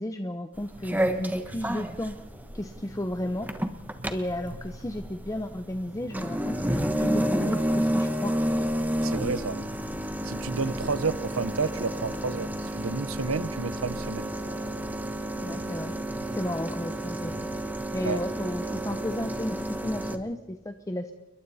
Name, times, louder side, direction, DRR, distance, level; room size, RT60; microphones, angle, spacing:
voice 1, 0.0-2.2 2.5-3.5 4.1-8.3 15.4-15.9 16.3-17.3 17.9-21.1, left 1 dB, 15° left, 7 dB, 0.8 m, -33 dB
sound 1, 0.6-20.2, right 1 dB, 10° right, 1.2 m, -31 dB
sound 2, 0.7-20.2, equal, 90° right, 6.1 m, -48 dB
voice 2, 9.0-9.7 10.2-14.3 18.0-18.2, right 4 dB, 70° right, 16 dB, 0.9 m, -31 dB
30.0 x 22.0 x 4.2 m, 1.0 s
head